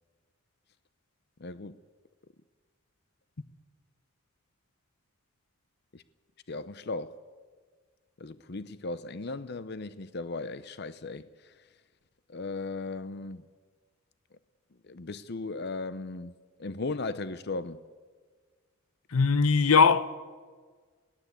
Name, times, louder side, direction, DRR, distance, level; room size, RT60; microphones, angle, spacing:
voice 1, 1.4-1.7 5.9-6.0 6.5-7.1 8.2-11.3 12.3-13.4 14.9-16.3 16.6-17.8, left 3 dB, 50° left, 0.7 m, -36 dB
voice 2, 19.1-20.2, left 5 dB, 85° left, 0.9 m, -21 dB
22.0 x 17.5 x 8.2 m
head